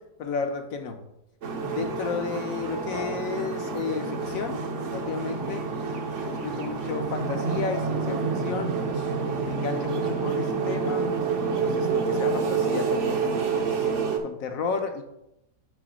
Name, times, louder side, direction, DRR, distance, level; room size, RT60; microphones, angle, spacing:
voice 1, 0.2-1.1 1.6-4.6 4.9-5.7 6.2-9.1 9.4-11.1 11.6-15.0, left 5 dB, 60° left, 6 dB, 1.0 m, -33 dB
sound 1, 1.4-14.2, right 5 dB, 55° right, 0.9 m, -28 dB
7.0 x 3.4 x 6.2 m, 0.84 s
omnidirectional pair, 1.9 m